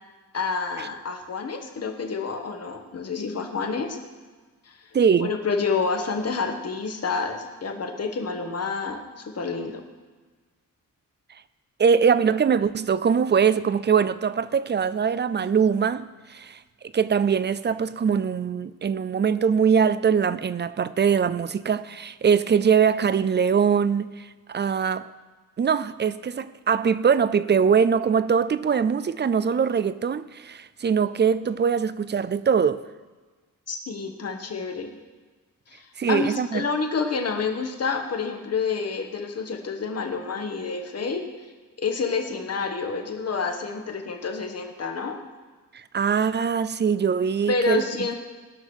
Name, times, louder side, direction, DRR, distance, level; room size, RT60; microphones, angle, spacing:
voice 1, 0.3-4.0 4.7-4.8 5.2-9.8 33.7-35.0 35.7-41.2 41.8-45.2 47.5-48.1, left 4 dB, 45° left, 1.4 m, -28 dB
voice 2, 4.9-5.3 11.8-16.6 16.9-25.1 25.6-32.8 36.0-36.7 45.7-47.8, right 6 dB, 35° right, 0.4 m, -22 dB
18.5 x 6.2 x 6.3 m
wide cardioid pair, 135°, 34 cm